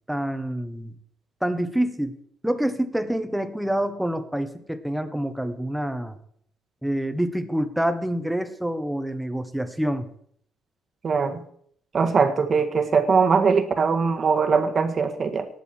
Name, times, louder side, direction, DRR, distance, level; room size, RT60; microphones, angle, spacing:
voice 1, 0.1-0.9 1.4-2.1 2.4-6.2 6.8-10.1, right 1 dB, 5° right, 9 dB, 1.3 m, -27 dB
voice 2, 11.0-11.4 11.9-15.5, right 5 dB, 40° right, 6 dB, 1.6 m, -21 dB
19.0 x 6.8 x 4.6 m, 0.65 s
cardioid pair, 90°, 0 cm